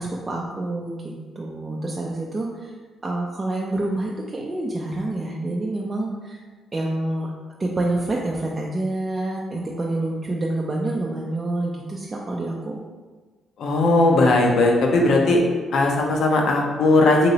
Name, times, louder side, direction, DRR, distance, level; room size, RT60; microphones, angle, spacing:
voice 1, 0.0-2.8 3.0-6.4 6.7-7.3 7.6-12.8, right 2 dB, 30° right, -3 dB, 0.4 m, -27 dB
voice 2, 13.6-15.4 15.7-17.3, left 2 dB, 65° left, 1 dB, 0.5 m, -18 dB
2.9 x 2.9 x 2.7 m, 1.4 s
cardioid pair, 90°, 0 cm